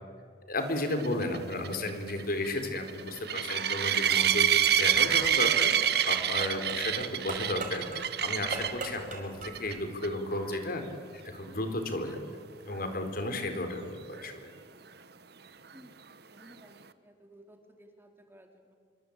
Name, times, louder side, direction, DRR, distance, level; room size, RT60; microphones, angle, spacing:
voice 1, 0.5-4.5 4.8-10.8 11.1-12.2 12.6-14.5, left 1 dB, 55° left, 6 dB, 4.1 m, -33 dB
sound 1, 0.9-8.9 9.4-9.7 10.0-10.1 10.5-10.6 14.2-14.3, right 9 dB, 65° right, 1.2 m, -27 dB
sound 2, 4.0-9.8, right 3 dB, 45° right, 5.7 m, -42 dB
voice 2, 15.7-18.8, right 1 dB, 15° right, 4 dB, 2.9 m, -56 dB
26.5 x 25.0 x 8.8 m, 2.1 s
head